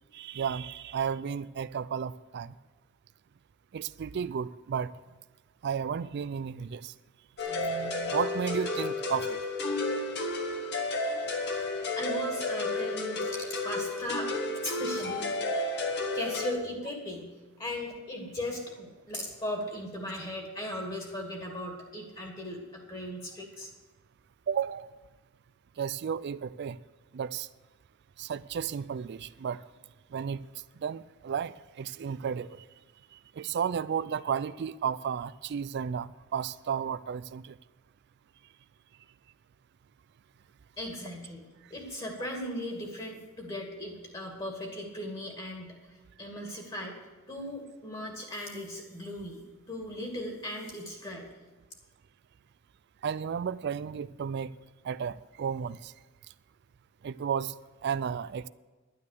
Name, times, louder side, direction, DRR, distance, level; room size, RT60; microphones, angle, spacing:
voice 1, 0.1-2.5 3.7-4.9 5.6-6.9 7.5-9.4 24.5-24.9 25.8-26.8 27.1-27.5 28.2-29.6 30.1-30.4 30.8-32.6 33.1-37.6 53.0-54.5 54.8-55.9 57.0-57.5 57.8-58.5, right 7 dB, 55° right, 16 dB, 0.4 m, -33 dB
sound 1, 7.4-16.5, left 2 dB, 55° left, 1.7 m, -32 dB
voice 2, 11.9-14.3 14.6-15.3 16.1-17.3 17.6-23.7 40.8-41.4 41.7-45.8 46.2-47.0 47.3-49.4 49.7-51.3, left 1 dB, 25° left, 1 dB, 2.3 m, -37 dB
11.5 x 9.7 x 6.6 m, 1.3 s
head